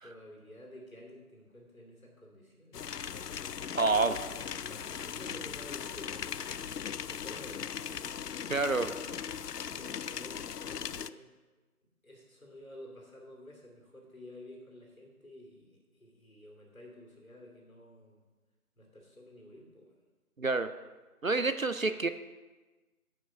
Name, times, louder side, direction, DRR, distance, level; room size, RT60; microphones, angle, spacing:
voice 1, 0.0-3.1 3.9-6.4 7.0-8.2 8.5-9.2 9.6-11.3 12.0-18.2 18.8-19.9, left 1 dB, 60° left, 0 dB, 3.1 m, -51 dB
sound 1, 2.7-11.1, left 8 dB, 90° left, 0.5 m, -39 dB
voice 2, 3.7-4.2 8.5-8.9 20.4-20.7 21.2-22.1, right 3 dB, 60° right, 11 dB, 0.6 m, -28 dB
9.3 x 6.1 x 6.5 m, 1.2 s
figure-of-eight pair, 180°, 46 cm